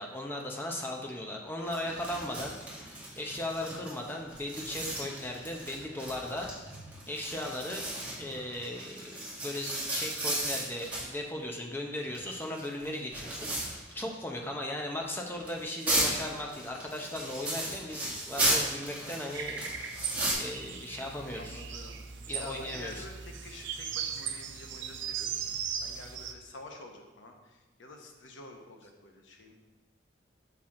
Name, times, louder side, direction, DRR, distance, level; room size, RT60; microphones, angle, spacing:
voice 1, 0.0-6.5 7.1-7.9 8.2-19.7 20.4-21.7 22.3-23.1, left 1 dB, 10° left, 0 dB, 0.7 m, -37 dB
sound 1, 1.6-11.1 11.9-14.1 14.4-14.5 15.4-20.3, right 1 dB, 10° right, 1.8 m, -35 dB
sound 2, 19.3-26.3, right 7 dB, 75° right, 0.6 m, -38 dB
voice 2, 21.4-22.0 22.4-23.1 23.4-27.3 27.8-29.5, left 2 dB, 80° left, 2 dB, 1.0 m, -48 dB
6.0 x 5.9 x 3.8 m, 1.2 s
head